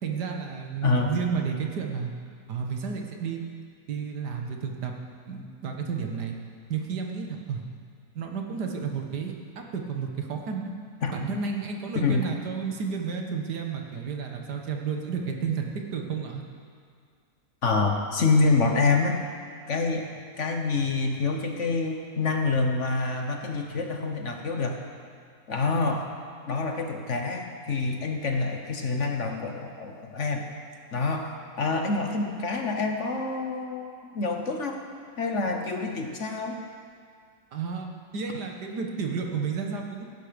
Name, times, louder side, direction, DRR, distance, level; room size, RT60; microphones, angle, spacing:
voice 1, 0.0-2.1 2.5-3.4 3.9-4.9 5.3-6.4 6.7-7.6 8.2-10.7 11.1-16.4 37.5-37.9 38.1-40.0, right 6 dB, 80° right, 2 dB, 1.9 m, -31 dB
voice 2, 0.8-1.2 11.0-11.1 11.9-12.3 17.6-19.2 19.7-24.8 25.5-26.1 26.5-30.5 30.9-34.8 35.2-36.6, left 3 dB, 50° left, 3 dB, 1.3 m, -27 dB
17.5 x 11.0 x 5.2 m, 2.1 s
omnidirectional pair, 1.8 m